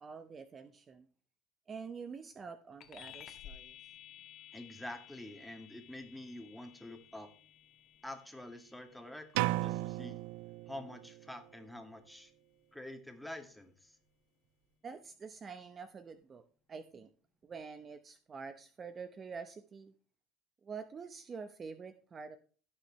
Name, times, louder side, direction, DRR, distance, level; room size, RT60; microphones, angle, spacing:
voice 1, 0.0-1.1 1.7-3.8 14.8-16.4 16.7-17.1 17.4-19.9 20.6-22.4, right 5 dB, 30° right, 10 dB, 0.9 m, -47 dB
sound 1, 2.8-12.6, left 10 dB, 45° left, 2.0 m, -56 dB
voice 2, 4.5-7.3 8.0-10.2 10.7-12.3 12.7-14.0, left 1 dB, 5° left, 6 dB, 2.1 m, -47 dB
sound 2, 9.3-11.2, right 18 dB, 75° right, 0.4 m, -35 dB
17.0 x 6.5 x 3.2 m, 0.40 s
supercardioid pair, 115°, 0 cm